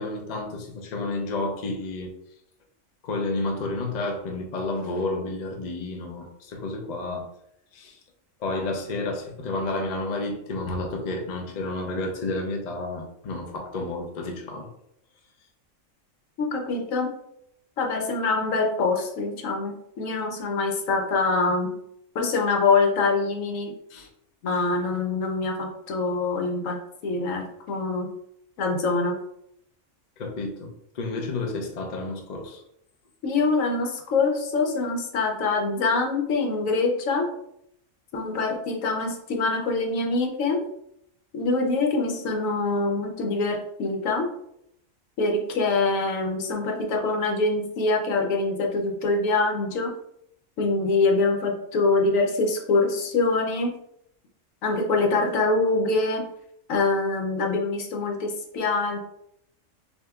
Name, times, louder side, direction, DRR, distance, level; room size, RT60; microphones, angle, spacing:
voice 1, 0.0-2.1 3.0-7.3 7.7-8.0 8.4-14.7 23.9-24.1 30.2-32.6, left 2 dB, 45° left, 2 dB, 0.6 m, -31 dB
voice 2, 16.4-17.1 17.8-21.7 22.1-23.7 24.4-28.1 28.6-29.2 33.2-37.3 38.1-40.6 41.3-44.3 45.2-49.9 50.6-53.7 54.6-56.2 56.7-59.0, left 3 dB, 80° left, 2 dB, 1.1 m, -24 dB
6.4 x 2.7 x 2.3 m, 0.76 s
omnidirectional pair, 1.4 m